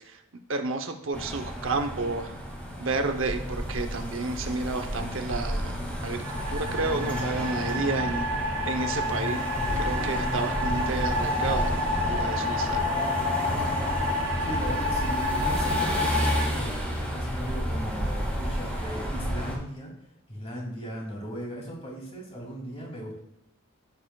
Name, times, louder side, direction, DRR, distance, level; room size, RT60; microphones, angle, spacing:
voice 1, 0.5-2.4 2.8-8.2 8.6-9.4 9.8-12.8, right 3 dB, 65° right, 6 dB, 0.8 m, -31 dB
sound 1, 1.1-19.6, equal, 5° left, 2.0 m, -31 dB
sound 2, 6.2-16.5, left 2 dB, 80° right, 1.4 m, -30 dB
voice 2, 14.4-19.9 20.3-23.2, right 1 dB, 30° left, -2 dB, 2.7 m, -37 dB
15.0 x 6.8 x 2.3 m, 0.78 s
head